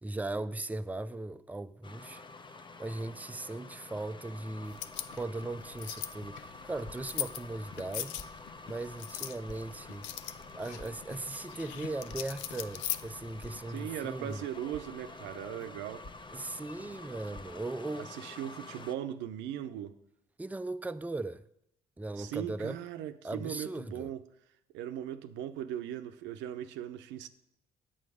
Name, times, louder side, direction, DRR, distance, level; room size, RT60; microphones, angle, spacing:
voice 1, 0.0-2.2 2.8-4.8 5.1-8.2 8.7-10.1 10.5-14.4 16.3-18.1 20.4-21.4 22.0-22.8 23.2-24.1, right 2 dB, 10° right, 0.4 m, -38 dB
sound 1, 1.8-18.9, left 3 dB, 25° left, 0.7 m, -49 dB
sound 2, 4.6-13.6, left 13 dB, 80° left, 0.4 m, -41 dB
Crackle, 6.7-17.6, left 1 dB, 65° left, 1.7 m, -56 dB
voice 2, 13.7-16.0 18.0-20.0 22.2-24.2 24.7-27.3, right 11 dB, 80° right, 0.6 m, -39 dB
8.6 x 7.6 x 4.9 m
supercardioid pair, 60°, 19 cm